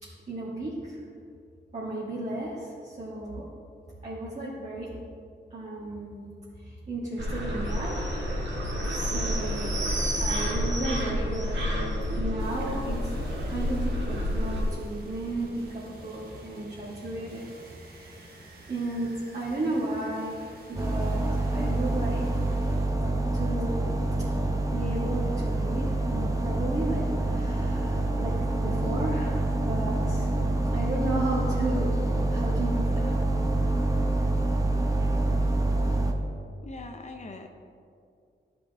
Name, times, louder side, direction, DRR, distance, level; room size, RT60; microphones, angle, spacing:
voice 1, 0.0-1.0 1.7-3.5 4.0-4.9 5.5-6.2 6.6-7.9 8.9-13.1 13.4-17.5 17.9-18.3 18.7-22.2 23.3-24.0 24.7-30.3 30.7-32.0 32.3-33.1, right 1 dB, 40° right, -7 dB, 1.6 m, -34 dB
sound 1, 7.2-14.6, equal, 80° right, 1.9 m, -29 dB
sound 2, 12.4-22.9, right 2 dB, 55° right, 1.3 m, -49 dB
sound 3, 20.7-36.1, right 2 dB, 20° right, 0.7 m, -26 dB
voice 2, 36.6-37.5, left 2 dB, 40° left, 4 dB, 0.6 m, -41 dB
12.5 x 5.3 x 3.4 m, 2.4 s
wide cardioid pair, 125°, 18 cm